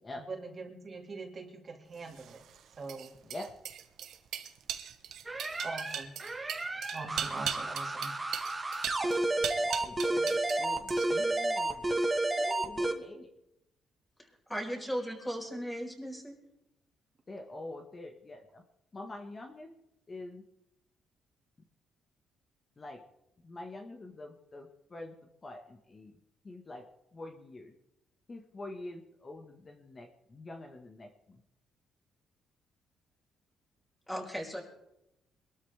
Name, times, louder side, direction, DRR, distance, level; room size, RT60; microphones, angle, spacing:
voice 1, 0.2-2.4 2.8-3.1 5.6-6.1 6.9-8.1, right 3 dB, 40° right, 3 dB, 2.4 m, -43 dB
sound 1, 2.1-10.6 10.9-11.3, right 9 dB, 75° right, 1.1 m, -39 dB
sound 2, 5.2-12.9, right 2 dB, 20° right, 1.6 m, -31 dB
voice 2, 9.4-12.0 12.4-13.4 17.3-18.6 18.9-19.7 20.1-20.4 22.8-23.0 23.4-25.1 25.4-26.1 26.4-26.8 27.1-27.7 28.3-31.4, left 2 dB, 30° left, 3 dB, 1.6 m, -46 dB
voice 3, 14.5-16.3 34.1-34.6, equal, 5° left, 0 dB, 4.8 m, -36 dB
23.0 x 13.0 x 3.5 m, 0.86 s
cardioid pair, 90°, 0 cm